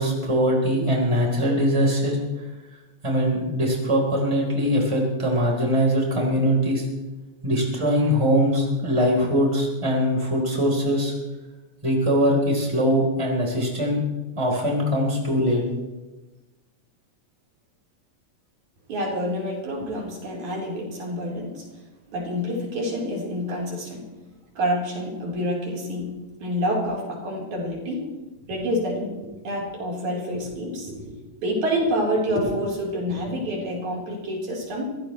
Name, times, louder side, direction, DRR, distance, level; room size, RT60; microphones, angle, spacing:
voice 1, 0.0-2.2 3.0-6.8 7.4-11.1 11.8-14.0 14.4-15.6, equal, 10° right, -1 dB, 3.9 m, -22 dB
voice 2, 18.9-21.6 22.1-24.1 24.6-26.1 26.4-28.1 28.5-34.9, equal, 80° right, -3 dB, 5.7 m, -27 dB
24.0 x 16.5 x 3.3 m, 1.1 s
omnidirectional pair, 3.3 m